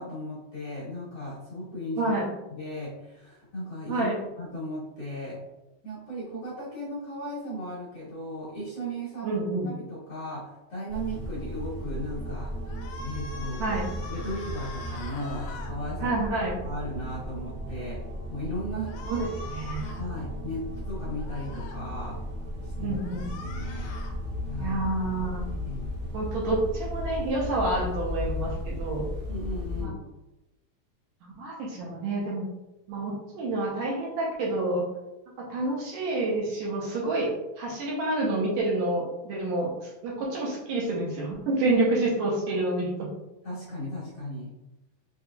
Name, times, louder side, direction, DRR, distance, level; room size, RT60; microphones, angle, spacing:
voice 1, 0.0-2.1 2.5-4.1 4.4-5.4 5.8-9.4 9.8-12.6 13.0-13.8 14.1-16.2 16.6-19.0 20.0-22.2 22.6-23.0 23.4-24.0 24.5-24.8 25.5-25.9 29.3-30.0 43.4-44.5, equal, 60° left, -8 dB, 1.7 m, -36 dB
voice 2, 2.0-2.3 3.9-4.2 9.2-9.7 13.6-13.9 16.0-16.6 19.0-19.9 22.8-23.3 24.6-25.5 26.1-29.1 29.8-29.9 31.2-32.5 32.9-34.8 35.4-43.1, right 2 dB, 75° right, -3 dB, 1.8 m, -28 dB
sound 1, 10.9-29.8, left 1 dB, 50° right, 0.8 m, -35 dB
sound 2, 12.7-15.7 18.8-20.0 21.2-21.8 22.9-24.1, left 3 dB, 80° left, 2.1 m, -43 dB
5.6 x 2.8 x 2.3 m, 0.98 s
omnidirectional pair, 3.8 m